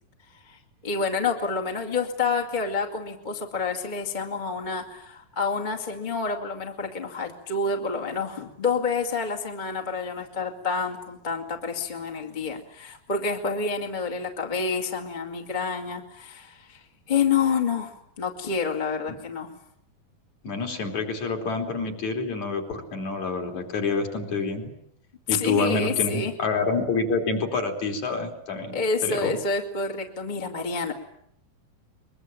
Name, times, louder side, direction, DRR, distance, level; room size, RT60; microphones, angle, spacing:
voice 1, 0.3-19.5 25.3-26.3 28.7-30.9, left 5 dB, 15° left, 3 dB, 1.8 m, -28 dB
voice 2, 20.4-24.7 25.3-29.3, left 4 dB, 55° left, 3 dB, 4.4 m, -27 dB
22.5 x 22.5 x 9.1 m, 0.72 s
omnidirectional pair, 4.1 m